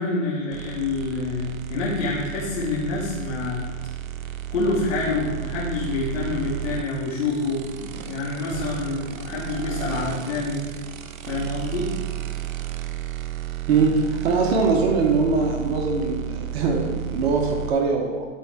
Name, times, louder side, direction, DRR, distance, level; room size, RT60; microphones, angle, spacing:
voice 1, 0.0-3.6 4.5-10.6 11.3-11.9, left 3 dB, 60° left, -7 dB, 2.5 m, -27 dB
sound 1, 0.5-17.7, right 11 dB, 80° right, 0.9 m, -33 dB
voice 2, 14.2-18.2, right 4 dB, 50° right, 1 dB, 1.3 m, -22 dB
12.0 x 4.7 x 4.7 m, 1.4 s
hypercardioid pair, 135°, 40 cm